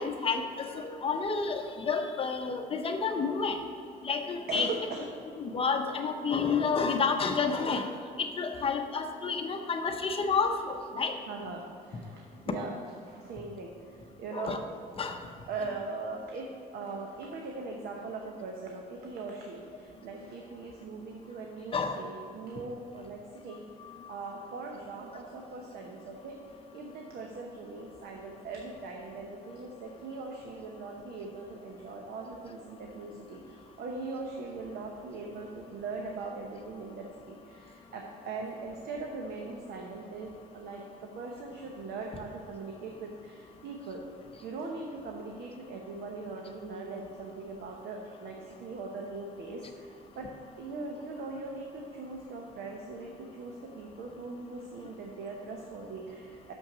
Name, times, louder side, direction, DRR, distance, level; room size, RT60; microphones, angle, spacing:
voice 1, 0.0-3.6 4.0-4.7 5.4-7.9 8.2-11.2 14.3-14.6 15.0-15.2 21.7-22.0 23.9-24.1, left 5 dB, 35° left, 5 dB, 0.7 m, -30 dB
voice 2, 4.5-5.1 11.3-12.7 13.0-14.6 15.5-16.5 16.7-23.6 24.1-26.4 26.7-44.0 44.4-50.3 50.6-56.5, right 3 dB, 70° right, 1 dB, 1.0 m, -40 dB
6.5 x 5.8 x 6.7 m, 2.5 s
cardioid pair, 110°, 17 cm